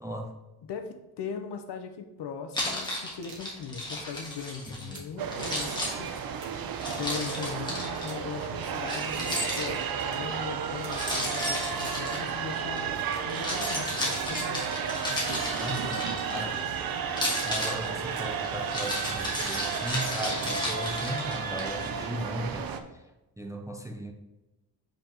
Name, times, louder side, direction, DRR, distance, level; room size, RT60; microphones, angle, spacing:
voice 1, 0.0-0.3 4.9-5.1 15.6-16.6 17.4-22.7 23.4-24.1, right 1 dB, 10° right, 2 dB, 0.4 m, -36 dB
voice 2, 0.6-6.1 6.8-14.6 15.1-15.9 16.3-16.4, left 6 dB, 75° left, 6 dB, 0.9 m, -39 dB
Keys jangling, 2.5-5.0 5.3-8.1 8.9-10.1 10.9-12.8 13.2-16.6 17.1-21.6, left 1 dB, 10° left, 1.4 m, -34 dB
sound 1, 3.2-3.5 4.2-5.3 6.3-6.8 7.9-8.3 9.0-9.4 10.1-10.3 10.8-11.0 11.6-12.1 13.1-13.3 14.2-14.4 15.1-15.4 16.3-16.5 17.2-17.4 18.1-18.4 19.1-19.5 20.3-20.7, right 3 dB, 85° right, 1.6 m, -50 dB
sound 2, 5.2-22.8, right 6 dB, 55° right, 0.6 m, -33 dB
7.4 x 5.2 x 3.0 m, 1.0 s
wide cardioid pair, 170°, 42 cm